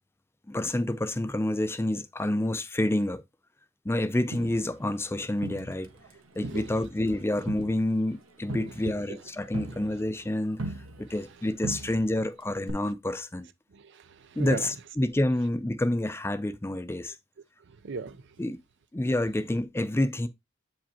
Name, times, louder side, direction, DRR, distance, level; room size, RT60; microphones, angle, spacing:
voice 1, 0.5-3.2 3.8-5.9 6.4-13.5 14.4-17.2 18.4-18.6 18.9-20.3, left 1 dB, 10° left, 0.5 m, -28 dB
Crowd, 4.3-6.1 6.4-11.4 11.6-12.3 12.7-12.8, right 2 dB, 80° right, 1.2 m, -40 dB
voice 2, 6.4-6.8 7.3-7.5 8.6-9.2 9.7-9.8 11.1-11.4 13.7-14.9 15.3-15.4 17.7-18.2, right 4 dB, 60° right, 0.5 m, -40 dB
8.1 x 5.0 x 2.8 m
head